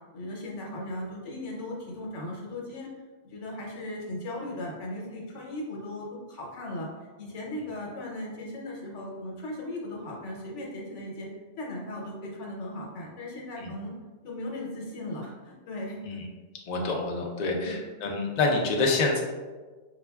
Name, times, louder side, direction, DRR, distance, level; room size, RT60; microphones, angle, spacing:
voice 1, 0.1-2.9 3.3-6.9 7.2-11.3 11.6-13.9 14.2-16.0 17.5-17.8, left 1 dB, 85° left, -2 dB, 1.1 m, -37 dB
voice 2, 16.7-19.2, left 3 dB, 55° left, 0 dB, 0.5 m, -27 dB
4.9 x 2.3 x 2.2 m, 1.4 s
omnidirectional pair, 1.2 m